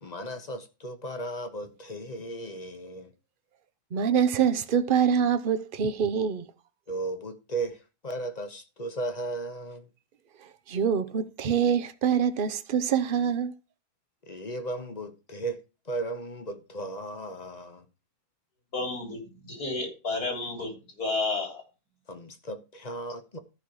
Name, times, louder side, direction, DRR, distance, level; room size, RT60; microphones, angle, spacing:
voice 1, 0.0-3.1 6.9-9.9 14.2-15.6 15.9-17.8 22.1-23.4, right 2 dB, 30° left, 1.0 m, -36 dB
voice 2, 3.9-6.5 10.7-13.5, right 7 dB, 45° right, 0.8 m, -25 dB
voice 3, 18.7-21.6, left 3 dB, 80° left, 3.9 m, -31 dB
14.0 x 5.4 x 4.7 m
omnidirectional pair, 1.6 m